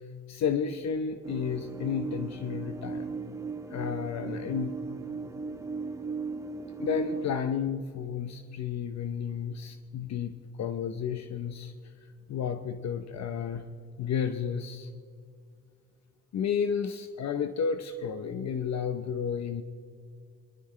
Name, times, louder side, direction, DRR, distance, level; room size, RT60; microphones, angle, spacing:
voice 1, 0.3-3.1 3.7-4.8 6.8-11.7 12.3-13.6 14.0-14.9 16.3-19.6, left 7 dB, 60° left, 8 dB, 0.8 m, -32 dB
sound 1, 1.2-7.3, right 4 dB, 10° right, 1.2 m, -37 dB
23.0 x 13.0 x 3.2 m, 2.2 s
cardioid pair, 90°, 30 cm